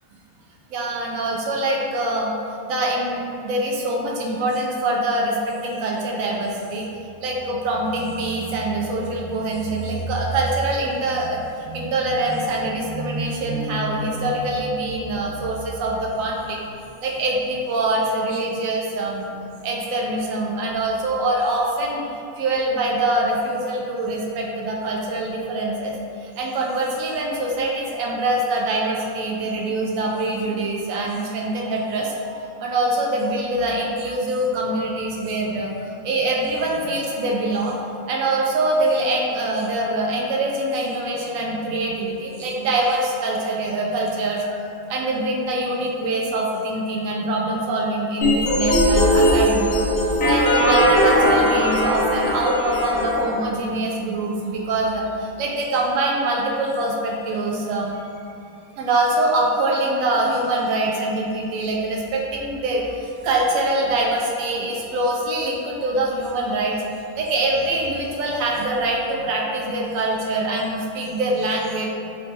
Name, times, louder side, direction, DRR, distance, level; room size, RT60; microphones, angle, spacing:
voice 1, 0.7-2.3 2.7-6.9 7.2-16.6 17.0-19.3 19.6-25.9 26.2-35.7 36.0-49.8 50.0-57.9 58.8-66.8 67.2-71.9, right 2 dB, 75° right, -2 dB, 1.0 m, -24 dB
sound 1, 48.2-53.2, equal, 50° left, 0.8 m, -19 dB
3.2 x 3.1 x 2.8 m, 2.6 s
omnidirectional pair, 1.5 m